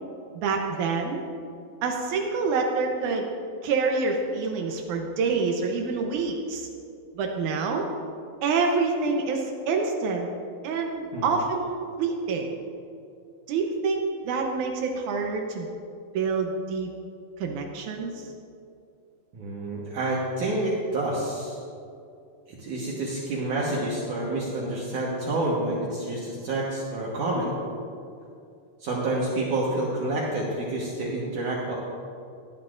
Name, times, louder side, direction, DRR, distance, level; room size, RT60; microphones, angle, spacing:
voice 1, 0.4-1.2 1.8-3.3 3.6-6.7 7.2-7.9 8.4-10.3 10.6-12.5 13.5-15.7 16.1-16.9 17.4-18.3, right 4 dB, 90° right, 2 dB, 1.7 m, -27 dB
voice 2, 19.3-21.6 22.6-27.5 28.8-31.7, right 2 dB, 60° right, -4 dB, 2.3 m, -28 dB
18.0 x 11.5 x 2.5 m, 2.5 s
omnidirectional pair, 4.8 m